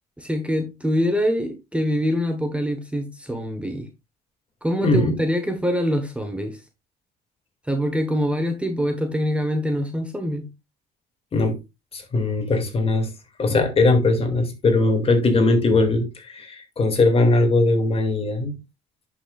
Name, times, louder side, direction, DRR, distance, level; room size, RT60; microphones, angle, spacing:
voice 1, 0.2-3.9 4.6-6.6 7.7-10.5, equal, 5° right, 1.2 m, -24 dB
voice 2, 4.8-5.2 11.3-11.6 11.9-13.1 13.4-18.5, left 2 dB, 35° left, 2.2 m, -20 dB
10.5 x 6.0 x 2.4 m
cardioid pair, 110°, 17 cm